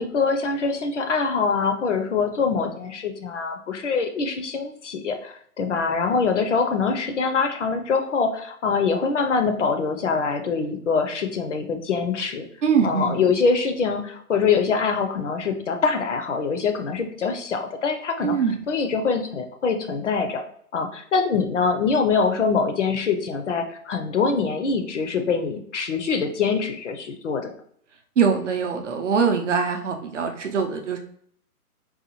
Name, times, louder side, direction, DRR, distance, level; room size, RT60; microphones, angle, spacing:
voice 1, 0.0-12.5 12.8-18.4 18.7-20.4 20.7-27.5, left 5 dB, 55° left, 5 dB, 0.5 m, -24 dB
voice 2, 12.6-13.2 18.2-18.6 28.2-31.0, right 6 dB, 55° right, 4 dB, 0.6 m, -23 dB
4.0 x 2.3 x 2.8 m, 0.63 s
hypercardioid pair, 165°, 46 cm